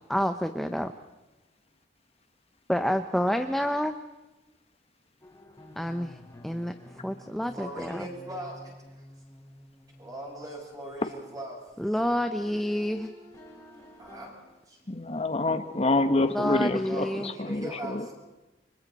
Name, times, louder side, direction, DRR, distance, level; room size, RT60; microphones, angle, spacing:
voice 1, 0.1-0.9 2.7-3.9 5.8-6.2 6.4-6.7 7.0-8.1 11.8-13.1 16.3-17.3, equal, ahead, 7 dB, 0.7 m, -28 dB
sound 1, 5.2-11.7 12.0-14.3, left 1 dB, 15° left, 4.5 m, -50 dB
voice 2, 7.5-8.7 10.0-11.6 14.0-14.4 14.7-14.8 16.7-18.1, right 1 dB, 20° right, -2 dB, 7.6 m, -40 dB
voice 3, 14.9-18.0, left 2 dB, 35° left, 9 dB, 1.3 m, -27 dB
30.0 x 25.0 x 4.2 m, 1.1 s
head